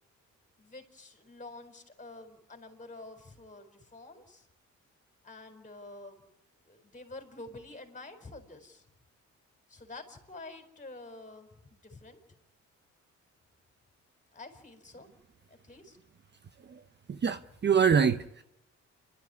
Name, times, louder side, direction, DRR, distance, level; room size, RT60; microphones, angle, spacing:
voice 1, 0.6-4.5 5.2-6.2 6.6-8.8 9.7-12.2 14.3-15.1 15.5-16.0, left 2 dB, 25° left, 4.4 m, -48 dB
voice 2, 17.1-18.4, right 6 dB, 35° right, 0.9 m, -25 dB
29.0 x 12.5 x 9.5 m
cardioid pair, 90°, 30 cm